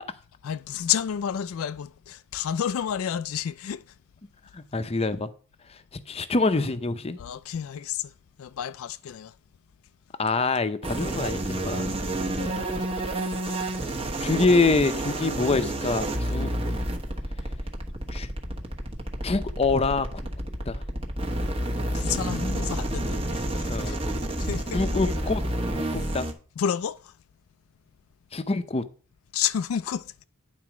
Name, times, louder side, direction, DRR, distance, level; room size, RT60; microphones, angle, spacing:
voice 1, 0.4-3.9 7.2-8.1 8.4-9.3 12.3-13.5 21.9-24.0 24.4-24.8 26.6-27.1 29.3-30.3, left 8 dB, 80° left, 0.4 m, -31 dB
voice 2, 4.5-5.3 6.1-7.2 10.2-11.9 13.5-13.7 14.2-16.5 18.1-18.3 19.2-20.1 20.7-20.8 23.7-24.0 24.7-25.4 25.8-26.3 28.3-28.8, left 3 dB, 30° left, 0.6 m, -25 dB
sound 1, 10.8-26.3, right 1 dB, 25° right, 1.2 m, -29 dB
9.5 x 4.2 x 6.0 m
head